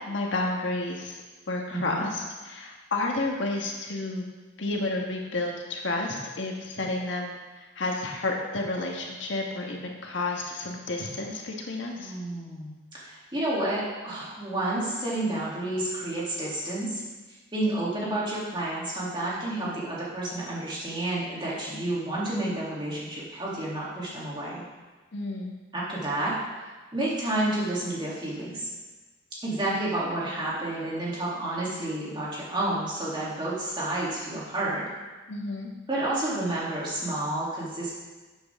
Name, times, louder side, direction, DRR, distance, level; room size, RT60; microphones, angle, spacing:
voice 1, 0.1-1.2 1.5-4.2 4.6-7.4 7.7-12.1 25.1-25.5 35.3-35.7, left 2 dB, 70° left, 0 dB, 1.4 m, -31 dB
voice 2, 1.7-2.0 11.9-17.0 17.5-24.6 25.7-26.4 26.9-28.7 29.4-34.8 35.9-37.9, right 1 dB, 25° right, -7 dB, 2.8 m, -30 dB
12.0 x 8.0 x 3.6 m, 1.3 s
head